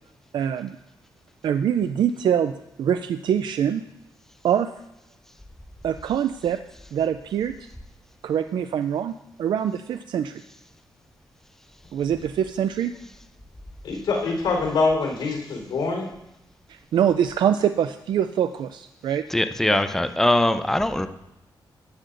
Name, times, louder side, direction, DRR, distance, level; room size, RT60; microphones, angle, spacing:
voice 1, 0.3-0.8 1.4-2.5 2.8-3.8 4.4-4.7 5.8-6.6 6.9-7.5 8.2-10.4 11.9-12.9 16.7-19.2, right 9 dB, 75° right, 10 dB, 0.4 m, -24 dB
voice 2, 13.8-16.1, left 3 dB, 85° left, -2 dB, 3.7 m, -24 dB
voice 3, 19.3-21.1, left 1 dB, 5° left, 9 dB, 0.6 m, -21 dB
14.0 x 9.4 x 2.5 m, 0.91 s
cardioid pair, 110°, 8 cm